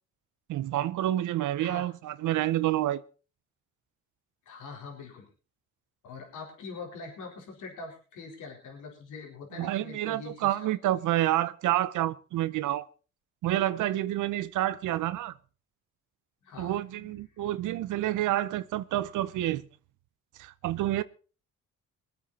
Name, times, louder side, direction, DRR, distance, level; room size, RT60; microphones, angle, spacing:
voice 1, 0.5-3.0 9.6-12.9 13.4-15.3 16.6-19.7 20.4-21.0, right 14 dB, 80° right, 0.8 m, -28 dB
voice 2, 4.5-5.3 6.0-10.6 16.4-17.5, left 4 dB, 85° left, 4.4 m, -44 dB
22.5 x 8.7 x 4.3 m
cardioid pair, 90°, 30 cm